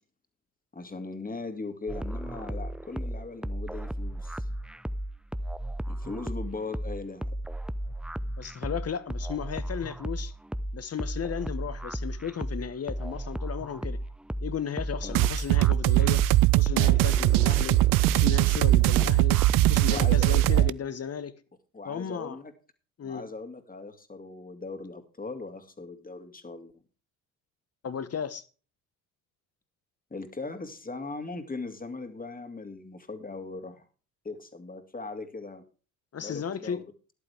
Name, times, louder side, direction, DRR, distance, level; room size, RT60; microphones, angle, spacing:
voice 1, 0.7-4.5 5.9-7.4 15.0-15.2 19.9-20.5 21.7-22.5 23.0-26.7 30.1-33.9 34.2-35.6 36.2-36.8, left 3 dB, 20° left, 2.6 m, -39 dB
sound 1, 1.9-20.7, right 1 dB, ahead, 0.6 m, -35 dB
voice 2, 8.4-10.3 10.7-14.0 14.4-16.3 16.6-17.8 18.1-19.4 19.7-21.4 21.8-22.4 23.0-23.2 27.8-28.4 36.1-36.8, left 7 dB, 35° left, 1.4 m, -35 dB
sound 2, 15.1-20.7, right 19 dB, 55° right, 0.5 m, -21 dB
13.5 x 11.5 x 3.5 m
hypercardioid pair, 60°, 42 cm